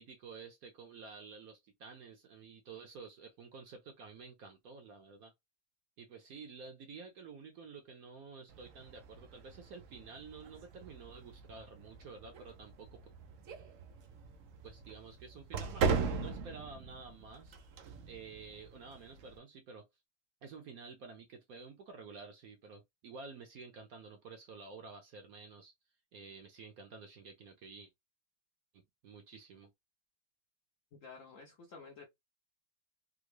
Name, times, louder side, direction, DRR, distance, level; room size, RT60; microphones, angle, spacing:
voice 1, 0.0-5.3 6.0-13.0 14.6-17.6 18.1-19.9 20.4-25.7 26.1-27.9 28.7-29.7, right 4 dB, 65° right, 0.9 m, -51 dB
sound 1, 8.5-19.4, right 5 dB, 90° right, 0.7 m, -40 dB
voice 2, 30.9-32.1, left 4 dB, 65° left, 0.8 m, -52 dB
3.6 x 2.0 x 3.2 m
omnidirectional pair, 2.1 m